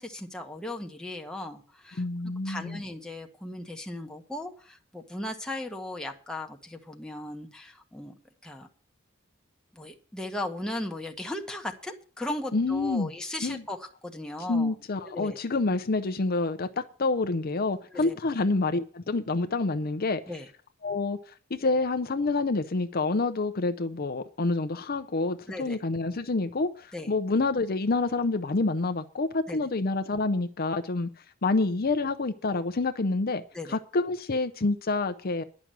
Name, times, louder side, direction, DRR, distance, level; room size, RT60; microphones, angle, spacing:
voice 1, 0.0-8.1 8.4-8.7 9.7-14.7 15.1-15.4 17.9-18.2 20.3-20.5 25.5-25.8 26.9-27.1 29.5-29.7 33.5-33.8, left 1 dB, 5° left, 1.2 m, -37 dB
voice 2, 2.0-2.8 12.5-13.1 13.4-13.6 14.5-20.2 20.8-21.2 21.5-31.1 31.4-33.4 33.7-35.4, left 3 dB, 45° left, 0.7 m, -27 dB
11.0 x 6.0 x 8.9 m
head